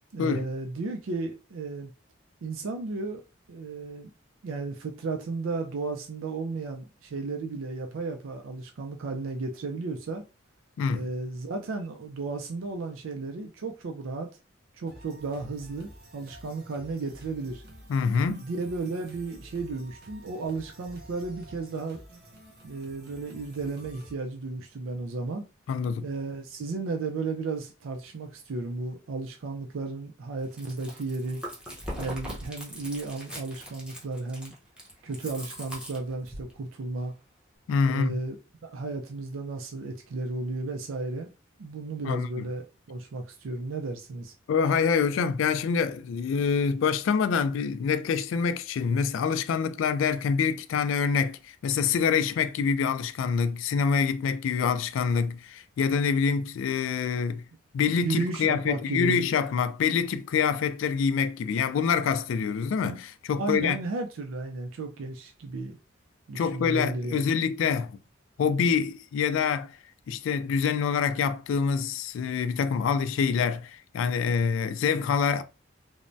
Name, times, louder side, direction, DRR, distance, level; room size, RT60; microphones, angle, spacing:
voice 1, 0.1-1.9 2.4-3.2 3.5-4.1 4.4-10.2 10.9-14.3 14.8-17.6 18.4-22.0 22.6-25.5 26.0-31.4 32.0-34.5 35.0-37.1 37.8-38.4 38.6-41.3 41.6-44.3 58.0-59.2 63.4-65.8 66.3-67.3, right 3 dB, 90° right, 0.4 m, -34 dB
voice 2, 10.8-11.1 17.9-18.5 25.7-26.1 37.7-38.1 42.0-42.5 44.5-57.4 57.7-63.8 66.3-68.0 68.4-69.8 70.1-75.4, left 6 dB, 75° left, 0.3 m, -26 dB
sound 1, 14.9-24.1, right 1 dB, 55° right, 0.7 m, -50 dB
Chewing mastication, 30.4-36.5, equal, 5° right, 0.7 m, -40 dB
3.2 x 2.1 x 2.5 m
head